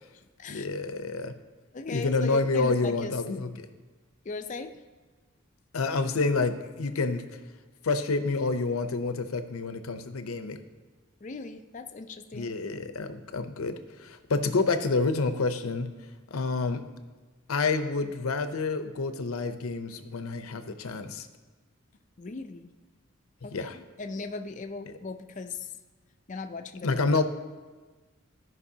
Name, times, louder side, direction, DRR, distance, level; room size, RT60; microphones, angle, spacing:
voice 1, 0.5-1.3 1.9-3.7 5.7-7.2 7.8-10.6 12.3-13.7 14.0-15.9 16.3-16.8 17.5-21.3 23.5-23.8 26.8-27.2, left 3 dB, 85° left, 9 dB, 0.6 m, -28 dB
voice 2, 1.7-3.1 4.3-4.7 11.2-12.5 22.2-22.7 23.4-25.7 26.3-27.1, left 3 dB, 35° left, 7 dB, 0.4 m, -38 dB
14.5 x 5.3 x 2.8 m, 1.4 s
head